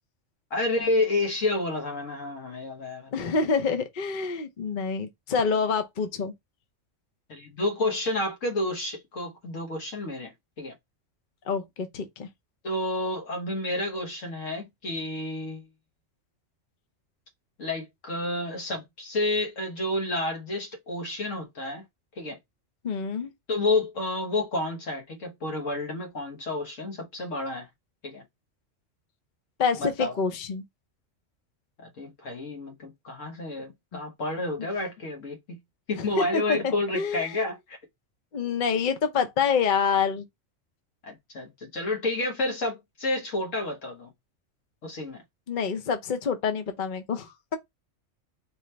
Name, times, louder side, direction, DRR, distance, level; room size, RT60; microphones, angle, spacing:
voice 1, 0.5-3.1 7.3-10.7 12.6-15.7 17.6-21.9 22.1-22.4 23.5-27.7 28.0-28.2 29.8-30.2 31.8-35.6 35.9-37.8 41.0-44.1 44.8-45.2, left 2 dB, 75° left, 1.7 m, -30 dB
voice 2, 3.1-6.3 11.5-12.3 22.8-23.3 29.6-30.6 33.9-34.0 36.2-36.6 36.9-37.3 38.3-40.3 45.5-47.6, left 5 dB, 45° left, 0.7 m, -27 dB
3.9 x 3.0 x 3.2 m
omnidirectional pair, 1.3 m